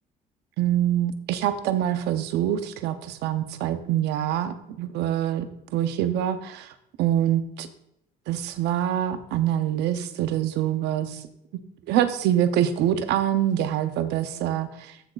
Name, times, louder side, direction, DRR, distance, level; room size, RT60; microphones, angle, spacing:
voice 1, 0.6-6.7 7.0-7.7 8.3-11.2 11.9-14.9, right 11 dB, 85° right, 10 dB, 0.7 m, -25 dB
14.0 x 6.2 x 2.4 m, 0.78 s
cardioid pair, 110°, 17 cm